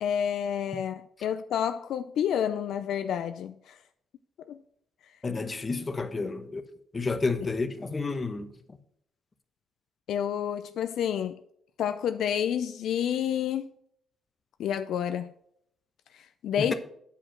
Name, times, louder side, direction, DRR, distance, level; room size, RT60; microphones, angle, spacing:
voice 1, 0.0-3.8 4.5-4.6 10.1-11.4 11.8-13.7 14.6-15.3 16.4-16.7, left 9 dB, 75° left, 0.4 m, -29 dB
voice 2, 5.2-6.6 6.9-8.5 16.6-16.7, left 3 dB, 30° left, 1.0 m, -30 dB
8.6 x 5.1 x 5.8 m
cardioid pair, 90°, 0 cm